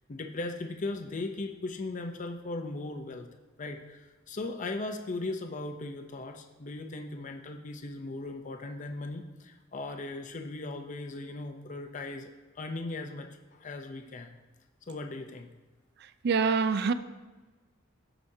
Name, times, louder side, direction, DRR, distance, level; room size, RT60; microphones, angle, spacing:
voice 1, 0.1-3.3 3.6-12.3 12.6-14.3 14.9-15.5, left 2 dB, 40° left, 0.6 m, -38 dB
voice 2, 16.2-16.9, right 5 dB, 55° right, 0.4 m, -25 dB
14.0 x 5.0 x 2.7 m
head